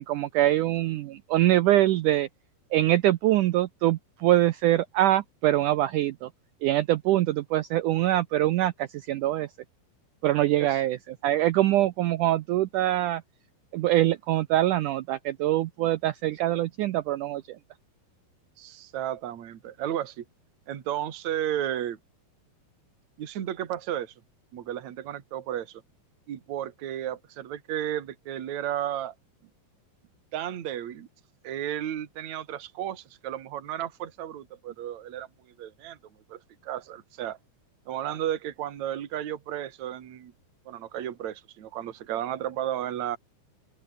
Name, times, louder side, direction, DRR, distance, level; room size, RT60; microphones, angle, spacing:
voice 1, 0.0-2.3 2.7-6.3 6.6-9.5 10.2-11.0 11.2-13.2 13.7-17.6, right 14 dB, 85° right, 1.8 m, -24 dB
voice 2, 18.6-20.2 20.7-22.0 23.2-24.1 24.5-25.8 26.3-29.1 30.3-31.1 31.4-36.0 36.3-37.4 37.9-40.3 40.7-43.2, right 11 dB, 50° right, 3.0 m, -33 dB
open air
omnidirectional pair, 4.4 m